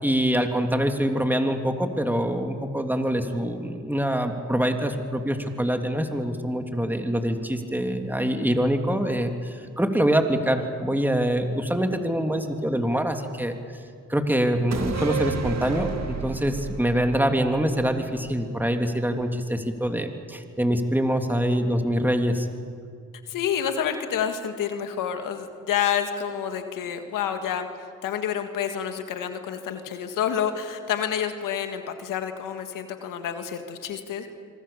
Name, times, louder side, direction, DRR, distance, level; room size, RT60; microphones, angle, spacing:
voice 1, 0.0-13.5 14.1-22.5, equal, 5° right, 5 dB, 3.1 m, -25 dB
sound 1, 14.7-18.3 18.6-18.7, right 5 dB, 55° right, 2.7 m, -31 dB
voice 2, 23.3-27.7 28.0-34.3, left 8 dB, 90° left, 7 dB, 1.8 m, -28 dB
25.5 x 25.0 x 7.2 m, 2.2 s
supercardioid pair, 50°, 31 cm